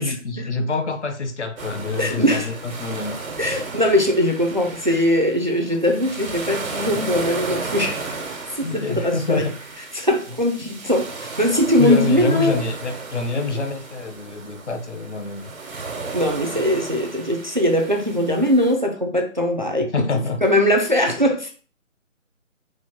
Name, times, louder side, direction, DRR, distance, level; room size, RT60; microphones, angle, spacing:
voice 1, 0.0-3.2 8.6-9.6 11.8-15.4 19.8-20.4, left 3 dB, 60° left, 0.8 m, -26 dB
sound 1, 1.6-18.8, right 3 dB, 85° right, 1.2 m, -34 dB
voice 2, 2.0-2.5 3.4-8.2 8.5-9.4 9.9-12.6 16.1-19.9 20.4-21.5, left 1 dB, 40° right, 0.4 m, -20 dB
4.3 x 2.1 x 4.5 m
figure-of-eight pair, 165°, 40 cm